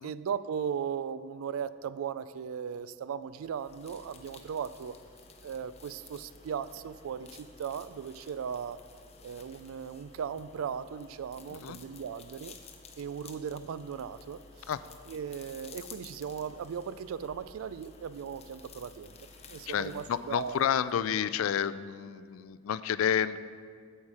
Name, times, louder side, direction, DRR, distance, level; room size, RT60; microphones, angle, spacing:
voice 1, 0.0-4.9 5.4-8.8 9.2-12.5 13.0-14.7 15.1-19.2 19.5-20.7, right 7 dB, 85° right, 16 dB, 0.3 m, -37 dB
sound 1, 3.3-21.1, left 4 dB, 30° left, 0.7 m, -53 dB
voice 2, 19.7-23.4, left 8 dB, 75° left, 15 dB, 0.3 m, -30 dB
8.3 x 7.4 x 4.8 m, 2.1 s
head